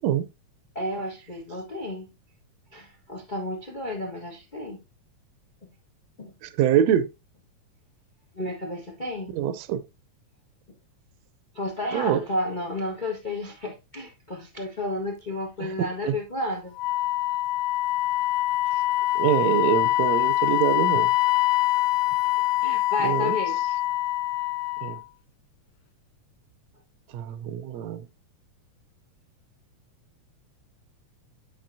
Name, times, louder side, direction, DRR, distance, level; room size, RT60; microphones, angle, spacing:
voice 1, 0.7-2.1 2.7-4.8 6.2-6.3 8.3-9.3 11.5-16.7 22.6-23.8, left 1 dB, 45° left, 0.5 m, -32 dB
voice 2, 6.4-7.1 9.3-9.8 11.9-12.2 15.6-15.7 16.1-16.2 19.1-21.1 23.0-23.4 24.8-25.0 27.1-28.0, right 10 dB, 75° right, 1.7 m, -24 dB
Wind instrument woodwind instrument, 16.8-25.0, left 17 dB, 90° left, 1.5 m, -24 dB
10.5 x 5.0 x 2.7 m
omnidirectional pair, 3.5 m